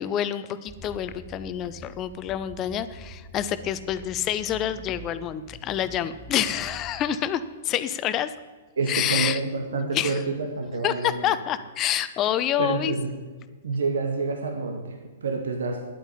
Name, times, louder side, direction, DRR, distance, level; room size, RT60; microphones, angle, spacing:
voice 1, 0.0-8.3 8.9-9.4 9.9-10.2 10.8-12.9, left 10 dB, 30° left, 13 dB, 0.7 m, -27 dB
sound 1, 0.7-7.1, right 1 dB, ahead, 3.4 m, -45 dB
voice 2, 8.7-11.2 12.6-13.1 13.6-15.8, right 4 dB, 70° right, 4 dB, 1.8 m, -28 dB
10.5 x 9.1 x 10.0 m, 1.4 s
figure-of-eight pair, 115°, 0 cm